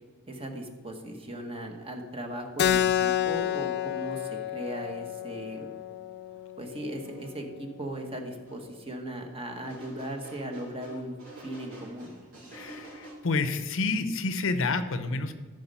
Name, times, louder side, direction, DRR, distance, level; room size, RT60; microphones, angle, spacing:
voice 1, 0.3-5.7 6.6-11.2 11.4-12.1, right 1 dB, 25° right, 4 dB, 1.3 m, -38 dB
Keyboard (musical), 2.6-7.7, left 11 dB, 50° left, 0.3 m, -30 dB
sound 1, 6.4-6.5 7.0-7.4 8.5-8.6 9.6-13.1, right 1 dB, 80° right, 3.8 m, -47 dB
voice 2, 12.5-15.3, left 3 dB, 65° left, 11 dB, 0.8 m, -29 dB
14.0 x 5.2 x 5.6 m, 1.4 s
head